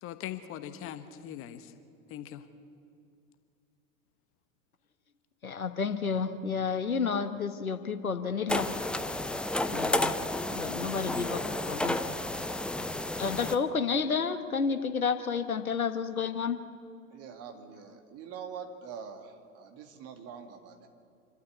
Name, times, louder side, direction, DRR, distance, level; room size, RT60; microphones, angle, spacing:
voice 1, 0.0-1.7 2.1-2.4, left 11 dB, 30° left, 10 dB, 1.3 m, -41 dB
voice 2, 5.4-8.7 9.7-10.1 10.5-12.0 13.2-16.6, left 5 dB, 80° left, 10 dB, 1.3 m, -31 dB
sound 1, 8.5-13.6, left 1 dB, ahead, 0.5 m, -31 dB
voice 3, 17.1-20.9, right 6 dB, 35° right, 5 dB, 2.3 m, -44 dB
27.0 x 12.5 x 8.4 m, 2.4 s
figure-of-eight pair, 90°, 42 cm